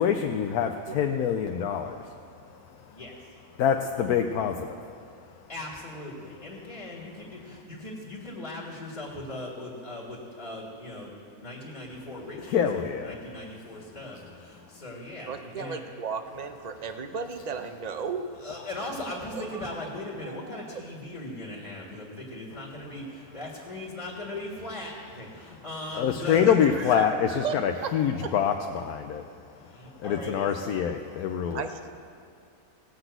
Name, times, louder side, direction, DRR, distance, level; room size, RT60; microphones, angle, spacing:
voice 1, 0.0-2.0 3.6-4.8 12.5-13.1 25.9-29.2 30.0-31.6, left 8 dB, 90° left, 5 dB, 1.1 m, -25 dB
voice 2, 5.5-11.1 11.4-15.8 18.4-27.1 29.7-30.5, left 1 dB, 30° left, -4 dB, 1.9 m, -39 dB
voice 3, 15.3-18.2 19.3-19.9 20.2-20.8 26.6-27.6 27.8-27.9 28.2-28.3 31.5-31.9, right 6 dB, 55° right, 8 dB, 0.4 m, -35 dB
17.5 x 6.0 x 7.9 m, 2.3 s
omnidirectional pair, 1.5 m